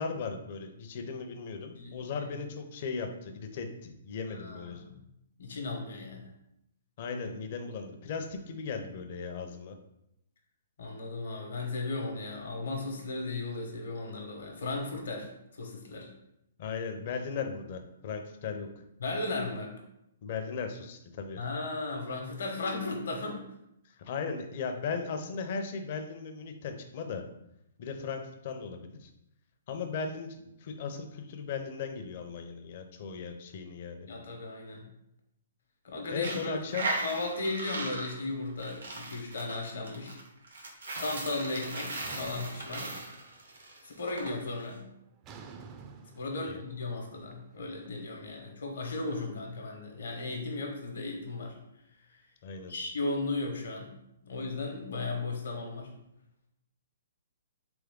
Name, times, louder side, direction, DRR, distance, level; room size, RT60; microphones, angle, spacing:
voice 1, 0.0-4.8 7.0-9.8 16.6-18.8 20.2-21.4 24.0-27.2 27.8-29.1 29.7-34.1 36.1-36.9 46.4-46.6 52.4-52.7, left 5 dB, 50° left, 6 dB, 0.6 m, -37 dB
voice 2, 1.8-2.1 4.3-5.0 5.4-6.3 10.8-16.1 19.0-19.7 21.4-23.4 34.1-34.9 35.8-36.5 37.0-40.2 41.0-42.9 43.8-44.9 46.1-51.6 52.1-52.2 52.7-53.9 54.2-55.9, left 2 dB, 70° left, 2 dB, 1.0 m, -36 dB
Coin (dropping), 36.1-44.3, right 2 dB, 85° right, 1.0 m, -38 dB
sound 1, 42.0-43.6 43.9-44.4 45.2-48.3, right 4 dB, 25° right, 0.4 m, -51 dB
3.5 x 3.2 x 3.6 m, 0.81 s
hypercardioid pair, 140°, 0 cm